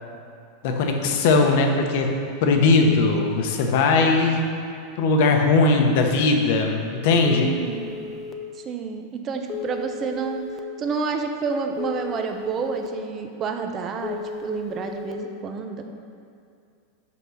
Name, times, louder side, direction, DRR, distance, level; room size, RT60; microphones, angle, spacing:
voice 1, 0.6-2.1 2.4-4.4 5.0-7.5, left 3 dB, 55° left, 3 dB, 0.8 m, -19 dB
Telephone, 7.2-8.3 9.5-10.6 11.8-12.9 14.0-15.1, left 6 dB, 20° left, 0.5 m, -34 dB
voice 2, 7.4-8.0 8.6-10.5 10.8-15.9, right 5 dB, 25° right, 5 dB, 0.5 m, -29 dB
5.7 x 5.2 x 6.3 m, 2.4 s
supercardioid pair, 165°, 0 cm